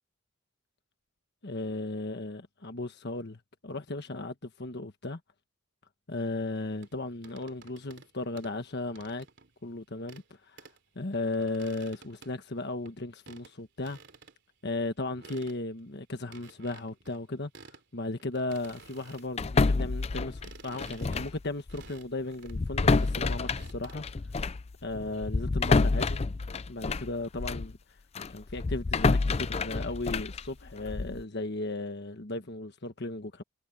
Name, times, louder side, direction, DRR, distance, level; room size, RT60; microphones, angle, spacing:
voice 1, 1.4-5.2 6.1-9.3 9.6-10.7 10.9-14.0 14.6-17.5 17.9-24.0 24.8-26.2 26.6-27.8 28.3-33.4, left 2 dB, 50° left, 1.4 m, -36 dB
sound 1, 6.8-8.1 8.4-9.5 10.1-10.3 10.6-10.8 11.1-13.0 13.3-13.5 13.8-14.3 14.7-14.8 15.1-15.8 16.3-17.8 18.1-19.3 19.8-23.9, right 4 dB, 55° right, 3.5 m, -52 dB
sound 2, 19.4-21.4 21.7-21.9 22.5-27.7 28.1-31.2, left 3 dB, 30° left, 0.4 m, -28 dB
head